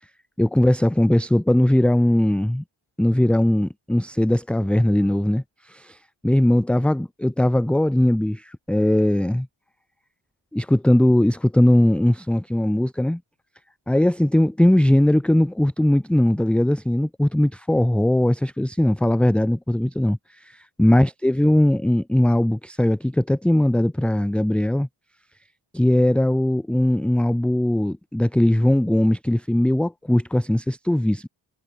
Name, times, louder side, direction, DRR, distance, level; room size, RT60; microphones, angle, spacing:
voice 1, 0.4-2.6 3.0-9.5 10.5-13.2 13.9-24.9 25.7-31.3, left 1 dB, ahead, 0.6 m, -20 dB
wide cardioid pair, 155°, 47 cm